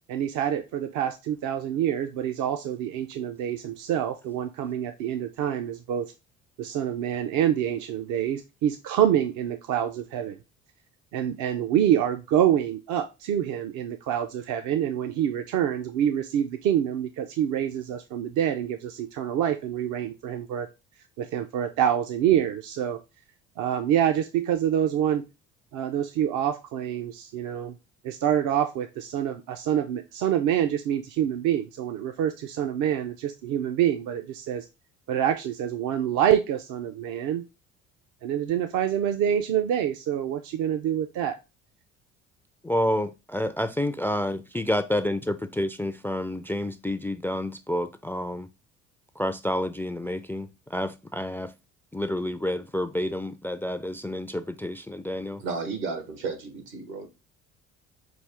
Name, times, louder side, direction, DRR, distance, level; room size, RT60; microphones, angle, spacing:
voice 1, 0.1-6.1 6.6-10.4 11.1-20.7 21.2-23.0 23.6-25.2 25.7-27.8 28.0-34.7 35.1-37.4 38.2-41.4, right 10 dB, 60° right, 0.6 m, -26 dB
voice 2, 42.6-48.5 49.2-51.5 51.9-55.4, left 1 dB, 5° left, 0.3 m, -29 dB
voice 3, 55.4-57.1, right 4 dB, 85° right, 1.5 m, -33 dB
6.1 x 2.4 x 3.4 m
hypercardioid pair, 70°, 34 cm